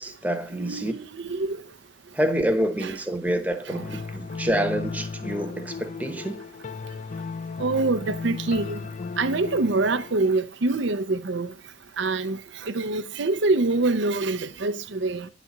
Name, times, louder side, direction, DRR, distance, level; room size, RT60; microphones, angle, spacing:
voice 1, 0.0-0.9 2.1-6.4, right 1 dB, 10° right, 0.9 m, -27 dB
voice 2, 0.5-1.6 2.8-3.0 3.6-4.0 7.6-8.8 9.2-11.5 12.0-15.3, right 3 dB, 65° right, 0.6 m, -25 dB
sound 1, 3.7-10.2, left 4 dB, 35° left, 0.3 m, -35 dB
10.5 x 4.1 x 7.2 m
head